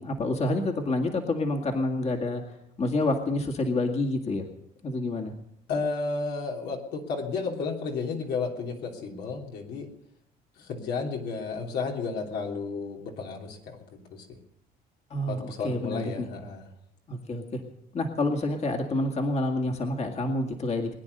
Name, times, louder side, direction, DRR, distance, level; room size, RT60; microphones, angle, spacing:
voice 1, 0.0-2.4 2.8-4.5 4.8-5.3 15.1-16.3 17.1-17.6 17.9-20.9, left 2 dB, 40° left, 2 dB, 2.1 m, -28 dB
voice 2, 5.7-9.9 10.6-14.4 15.3-16.7, left 4 dB, 75° left, 0 dB, 3.2 m, -32 dB
22.0 x 9.9 x 6.7 m, 0.78 s
cardioid pair, 110°, 17 cm